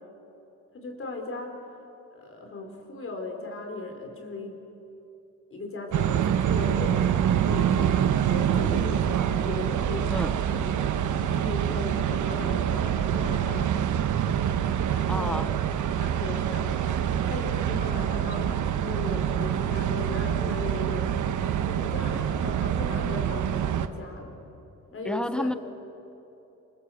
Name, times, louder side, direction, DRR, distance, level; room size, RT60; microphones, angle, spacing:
voice 1, 0.7-1.6 2.1-4.6 5.5-10.8 11.2-14.1 14.9-15.4 16.0-17.0 17.3-21.1 21.4-24.4 24.9-25.5, left 2 dB, 45° left, 3 dB, 4.6 m, -37 dB
sound 1, 5.9-23.9, right 9 dB, 80° right, 1.2 m, -26 dB
voice 2, 15.1-15.5 25.0-25.5, left 1 dB, 5° left, 11 dB, 0.9 m, -30 dB
27.0 x 26.0 x 8.0 m, 2.9 s
cardioid pair, 130°, 30 cm